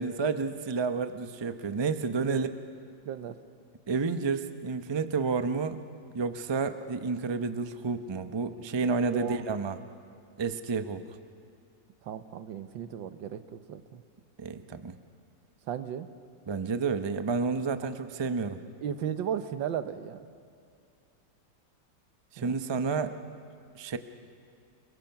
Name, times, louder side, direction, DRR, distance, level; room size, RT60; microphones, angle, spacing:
voice 1, 0.0-2.5 3.9-5.8 6.1-9.8 10.4-11.0 14.4-14.9 16.5-18.6 22.3-23.1 23.7-24.0, right 4 dB, 30° right, 9 dB, 0.4 m, -30 dB
voice 2, 3.0-3.4 9.1-9.4 12.0-14.0 15.7-16.1 18.8-20.3 22.4-22.6, right 9 dB, 85° right, 11 dB, 1.7 m, -35 dB
29.5 x 22.0 x 5.9 m, 2.4 s
omnidirectional pair, 2.0 m